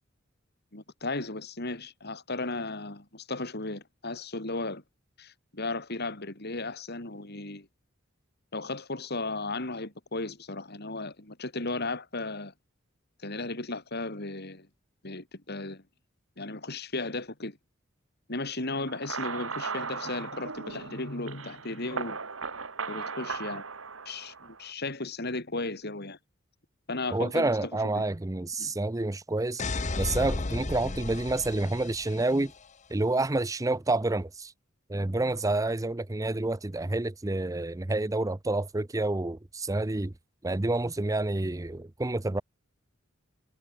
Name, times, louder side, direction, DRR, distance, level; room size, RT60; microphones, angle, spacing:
voice 1, 0.7-4.8 5.2-7.7 8.5-12.5 13.2-14.7 15.0-15.8 16.4-17.6 18.3-22.2 22.9-23.6 24.1-26.2 26.9-28.1 28.6-28.8, left 2 dB, 55° left, 4.1 m, -35 dB
sound 1, 18.9-24.7, right 5 dB, 85° right, 2.5 m, -37 dB
voice 2, 27.1-29.6 30.0-32.5 32.9-34.5 34.9-40.1 40.4-42.4, right 2 dB, 15° right, 0.6 m, -28 dB
sound 2, 29.6-32.5, left 2 dB, 35° left, 1.0 m, -33 dB
head